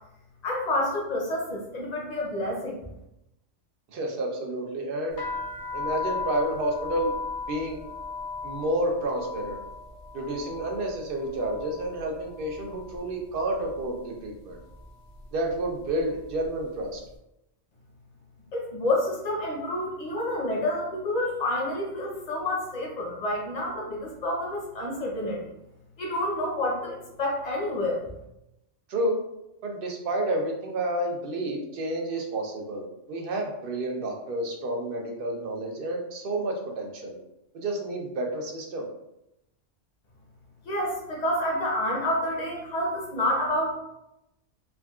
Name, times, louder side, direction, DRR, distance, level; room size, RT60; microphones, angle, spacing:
voice 1, 0.4-2.8 18.5-25.4 26.0-28.0 40.6-43.7, left 1 dB, 40° left, -2 dB, 0.7 m, -28 dB
voice 2, 3.9-5.2 5.7-7.1 7.5-7.8 8.4-9.6 10.1-14.6 15.3-17.0 28.9-29.2 29.6-37.2 37.5-38.9, right 1 dB, 60° right, 1 dB, 0.7 m, -30 dB
sound 1, 5.1-13.0 13.3-14.0 14.6-14.9 15.2-16.6, left 4 dB, 65° left, 1.0 m, -37 dB
3.5 x 2.2 x 2.3 m, 0.86 s
omnidirectional pair, 1.3 m